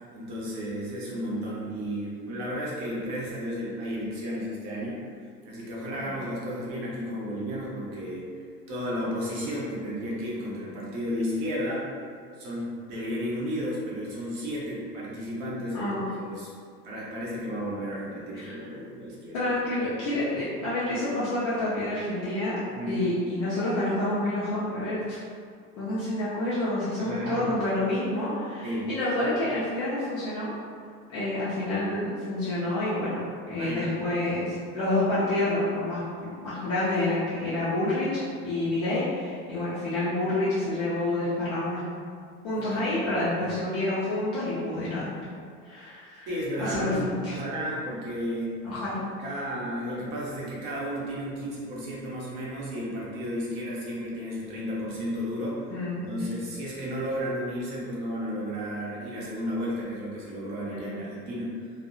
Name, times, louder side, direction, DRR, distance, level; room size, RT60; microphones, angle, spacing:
voice 1, 0.1-5.0 5.4-8.3 8.7-11.9 12.4-16.5 16.8-19.5 22.7-23.0 27.0-27.5 28.6-28.9 33.6-33.9 42.5-42.7 43.0-43.5 46.3-48.6 49.2-61.5, equal, 35° right, -6 dB, 0.7 m, -33 dB
voice 2, 15.7-16.0 18.3-18.6 19.3-25.2 25.8-30.5 31.1-33.2 33.5-38.1 38.4-41.8 42.4-45.1 45.6-46.3 46.6-47.3 48.6-49.0 55.7-56.2 60.7-61.0, left 1 dB, 25° left, -11 dB, 0.3 m, -28 dB
2.5 x 2.1 x 2.5 m, 2.1 s
figure-of-eight pair, 80°, 48 cm